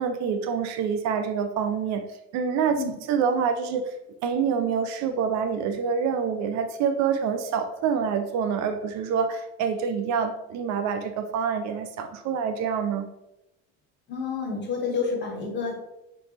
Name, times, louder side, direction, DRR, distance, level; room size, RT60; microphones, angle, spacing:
voice 1, 0.0-2.0 2.3-2.8 3.1-3.9 4.2-13.1, right 6 dB, 65° right, 8 dB, 0.5 m, -26 dB
voice 2, 14.1-15.8, left 5 dB, 35° left, -1 dB, 1.5 m, -29 dB
3.8 x 3.3 x 3.3 m, 0.90 s
supercardioid pair, 95°, 31 cm